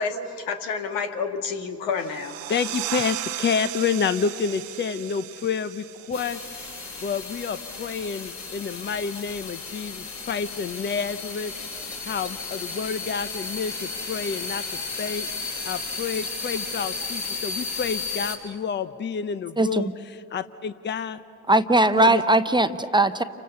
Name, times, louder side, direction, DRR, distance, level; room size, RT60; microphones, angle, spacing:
voice 1, 0.0-2.3, left 5 dB, 80° left, 5 dB, 2.2 m, -29 dB
sound 1, 2.0-7.3, right 15 dB, 85° right, 1.0 m, -36 dB
voice 2, 2.5-6.7 7.0-11.5 12.0-14.6 15.0-15.3 15.6-21.2 22.0-22.2, left 6 dB, 30° left, 12 dB, 0.9 m, -29 dB
sound 2, 6.1-18.4, left 4 dB, 50° left, 5.5 m, -34 dB
voice 3, 19.6-19.9 21.5-23.2, right 2 dB, 10° right, 10 dB, 0.9 m, -19 dB
29.0 x 25.0 x 7.1 m, 2.5 s
hypercardioid pair, 75°, 37 cm